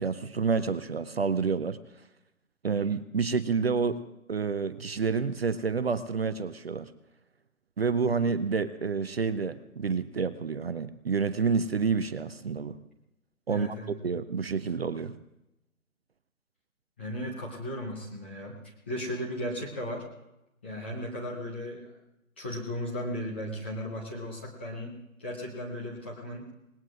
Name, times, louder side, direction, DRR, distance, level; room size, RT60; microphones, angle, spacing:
voice 1, 0.0-1.8 2.6-4.0 4.3-6.9 7.8-12.8 13.5-13.8 14.0-15.1, right 5 dB, 45° right, 12 dB, 0.6 m, -29 dB
voice 2, 13.5-13.9 17.0-20.0 20.6-22.0 22.4-26.5, equal, 10° left, -4 dB, 0.6 m, -36 dB
26.0 x 19.5 x 2.5 m, 0.90 s
figure-of-eight pair, 150°, 44 cm